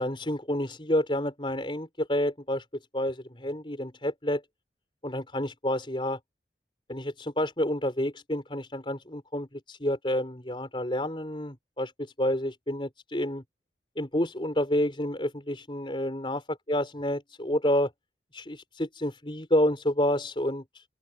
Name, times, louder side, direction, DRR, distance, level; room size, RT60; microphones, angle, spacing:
voice 1, 0.0-2.6 2.9-4.4 5.0-6.2 6.9-13.4 14.0-16.4 16.7-17.9 18.3-20.8, left 1 dB, 30° left, 4.8 m, -29 dB
open air
head